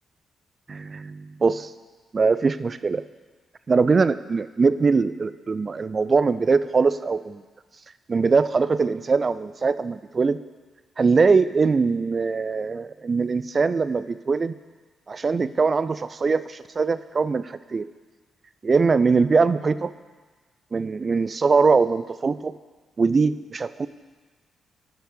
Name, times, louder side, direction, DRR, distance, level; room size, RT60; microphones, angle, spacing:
voice 1, 0.7-1.7 2.1-3.0 3.7-7.4 8.1-10.4 11.0-14.5 15.1-17.9 18.6-19.9 20.7-22.5 23.0-23.9, right 4 dB, 45° right, 14 dB, 0.3 m, -22 dB
5.8 x 5.8 x 6.5 m, 1.4 s
hypercardioid pair, 45°, 0 cm